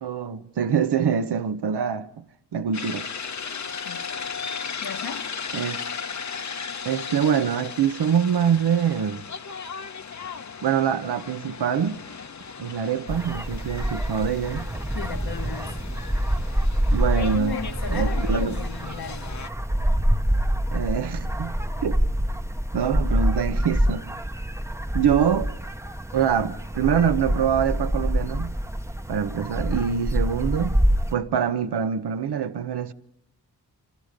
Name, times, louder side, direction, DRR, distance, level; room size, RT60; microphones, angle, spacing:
voice 1, 0.0-2.2 2.5-3.0 5.5-5.8 6.8-9.2 10.6-12.0 12.6-14.7 16.9-17.6 17.9-18.6 20.7-21.6 21.8-22.0 22.7-24.1 24.9-25.5 26.1-28.6 29.1-30.8 31.1-32.9, right 7 dB, 80° right, 1.2 m, -24 dB
sound 1, 2.7-19.5, left 6 dB, 45° left, 1.0 m, -36 dB
voice 2, 3.8-4.2 4.8-5.3 14.9-15.7 17.3-19.4, left 6 dB, 70° left, 1.5 m, -35 dB
sound 2, 13.1-31.1, equal, 5° right, 0.9 m, -26 dB
27.5 x 26.0 x 5.3 m
cardioid pair, 70°, 39 cm